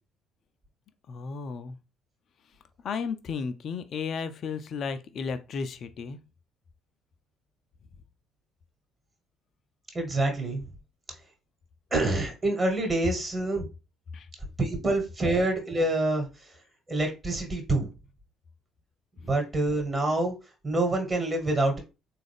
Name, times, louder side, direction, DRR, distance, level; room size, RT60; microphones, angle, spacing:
voice 1, 1.1-1.8 2.8-6.2 14.1-14.3, left 5 dB, 50° left, 0.4 m, -34 dB
voice 2, 9.9-10.6 11.9-13.7 14.6-16.2 16.9-17.9 19.2-20.3 20.6-21.8, right 2 dB, 30° right, 1.3 m, -26 dB
3.7 x 2.4 x 3.4 m
figure-of-eight pair, 50°, 0 cm